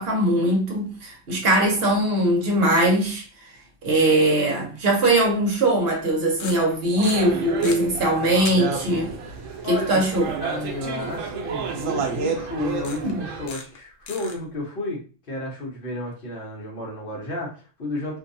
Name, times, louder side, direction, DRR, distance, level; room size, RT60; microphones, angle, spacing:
voice 1, 0.0-3.5 3.8-9.1 9.7-10.2 11.9-12.0 13.0-13.2, right 1 dB, 55° right, 1.0 m, -21 dB
sound 1, 5.0-5.1 6.3-6.7 7.0-7.8 8.4-8.5 8.9-9.0 11.9-12.0 12.8-13.1 13.5-13.8 14.1-14.3, left 5 dB, 80° left, 0.9 m, -35 dB
sound 2, 7.0-13.5, right 5 dB, 85° right, 1.0 m, -30 dB
voice 2, 9.6-10.0 10.4-15.0 15.3-18.2, left 2 dB, 50° left, 0.9 m, -32 dB
2.6 x 2.2 x 2.6 m
omnidirectional pair, 1.3 m